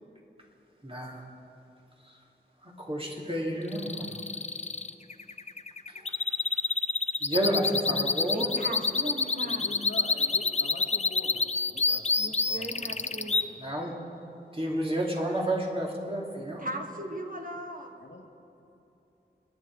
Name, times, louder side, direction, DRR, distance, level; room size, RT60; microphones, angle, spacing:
voice 1, 0.8-1.2 2.6-4.2 5.9-6.1 7.2-8.5 13.6-13.9 14.5-16.7, right 1 dB, 30° right, -2 dB, 2.9 m, -30 dB
sound 1, 3.7-13.4, left 4 dB, 35° left, 0.5 m, -28 dB
voice 2, 8.3-9.8 12.2-13.5 16.6-17.9, right 1 dB, 45° right, 3 dB, 1.7 m, -38 dB
voice 3, 9.4-13.5 18.0-18.3, left 2 dB, 85° left, 1 dB, 1.9 m, -45 dB
29.5 x 10.0 x 4.8 m, 2.8 s
wide cardioid pair, 50°, 19 cm